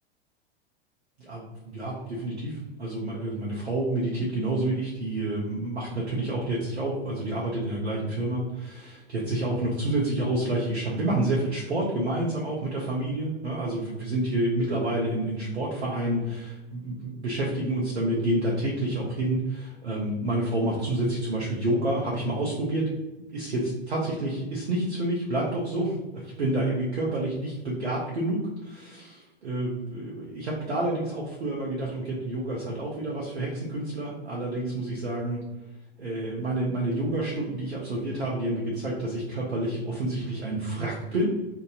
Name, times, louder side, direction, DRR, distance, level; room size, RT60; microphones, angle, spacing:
voice 1, 1.2-22.9 23.3-35.4 36.0-41.2, right 1 dB, 90° right, -4 dB, 0.9 m, -29 dB
2.8 x 2.6 x 3.8 m, 1.1 s
hypercardioid pair, 95°, 32 cm